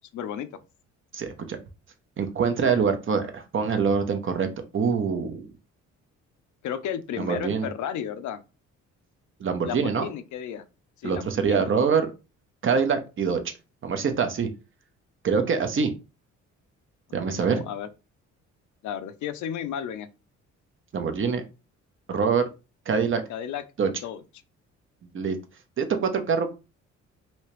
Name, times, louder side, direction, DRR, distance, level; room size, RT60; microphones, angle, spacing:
voice 1, 0.1-0.5 6.6-8.4 9.6-10.6 11.0-11.7 17.3-17.9 18.8-20.1 23.3-23.6 24.0-24.2, left 9 dB, 70° left, 0.5 m, -33 dB
voice 2, 1.1-1.6 2.2-5.5 7.2-7.7 9.4-10.1 11.0-12.1 12.6-13.5 13.8-14.5 15.2-15.9 17.1-17.6 20.9-21.4 22.1-22.5 22.9-23.2 23.8-23.9 25.1-25.4 25.8-26.5, right 6 dB, 40° right, 0.8 m, -24 dB
3.1 x 2.8 x 3.1 m
cardioid pair, 90°, 30 cm